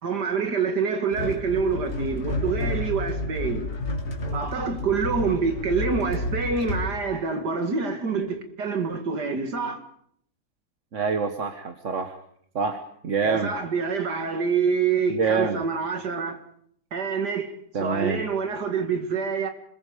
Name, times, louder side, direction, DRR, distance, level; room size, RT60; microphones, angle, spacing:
voice 1, 0.0-3.7 4.3-9.8 13.2-16.4 16.9-17.5 17.8-19.5, right 5 dB, 90° right, 2.7 m, -26 dB
sound 1, 1.1-6.9, left 2 dB, 65° left, 2.9 m, -30 dB
voice 2, 10.9-12.2 12.5-13.5 15.1-15.6 17.7-18.2, right 5 dB, 55° right, 1.5 m, -26 dB
26.5 x 21.0 x 5.1 m
omnidirectional pair, 1.7 m